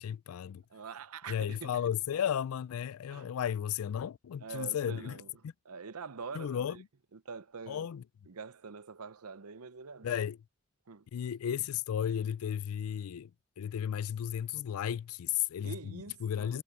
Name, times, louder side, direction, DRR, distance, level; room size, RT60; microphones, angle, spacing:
voice 1, 0.0-0.6 1.3-5.5 6.3-6.9 7.7-8.0 10.0-10.4 11.1-13.3 13.6-16.6, left 9 dB, 75° left, 0.3 m, -34 dB
voice 2, 0.7-1.8 3.1-3.3 4.4-5.3 5.6-6.8 7.1-7.9 8.3-10.2 10.9-11.1 15.6-16.6, right 5 dB, 85° right, 0.8 m, -45 dB
head